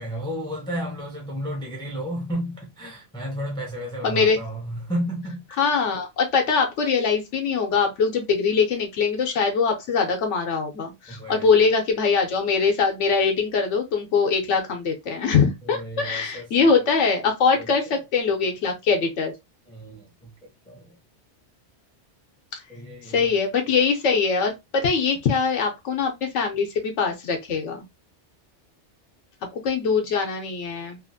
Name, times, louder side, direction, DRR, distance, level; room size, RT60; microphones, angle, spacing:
voice 1, 0.0-5.4 11.1-11.7 15.6-16.7 17.6-18.0 19.7-21.0 22.7-23.4, equal, 5° left, 0.5 m, -33 dB
voice 2, 4.0-4.4 5.6-19.3 22.5-22.6 23.0-27.8 29.5-31.0, left 5 dB, 80° left, 1.0 m, -22 dB
2.9 x 2.4 x 2.5 m
omnidirectional pair, 1.2 m